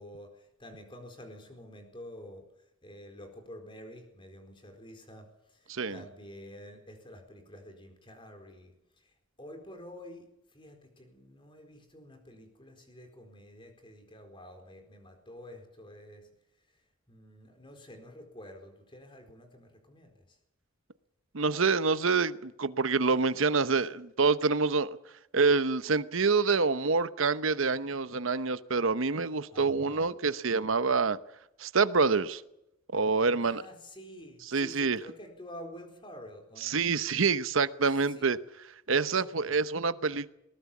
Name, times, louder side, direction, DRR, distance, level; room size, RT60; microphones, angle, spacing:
voice 1, 0.0-16.3 16.7-20.4 29.5-30.1 33.4-36.8 37.8-38.3 39.3-39.6, left 1 dB, 25° left, 6 dB, 4.4 m, -49 dB
voice 2, 21.3-25.0 25.3-31.2 31.6-32.4 32.9-33.6 34.5-35.0 36.6-38.4 38.9-40.3, right 4 dB, 70° right, 14 dB, 0.9 m, -27 dB
21.5 x 19.0 x 7.3 m, 0.85 s
head